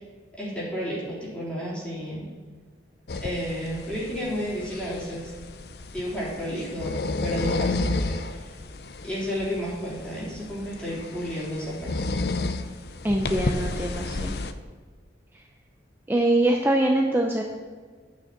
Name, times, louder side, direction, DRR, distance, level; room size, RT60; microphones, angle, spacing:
voice 1, 0.4-2.3 3.2-5.3 5.9-6.9 7.2-8.5 9.0-12.1 13.3-13.7, equal, 5° left, -8 dB, 3.8 m, -32 dB
sound 1, 3.1-14.5, left 2 dB, 55° left, 0.6 m, -32 dB
voice 2, 13.0-14.4 16.1-17.4, right 1 dB, 10° right, 1 dB, 0.6 m, -23 dB
9.5 x 6.4 x 7.4 m, 1.5 s
head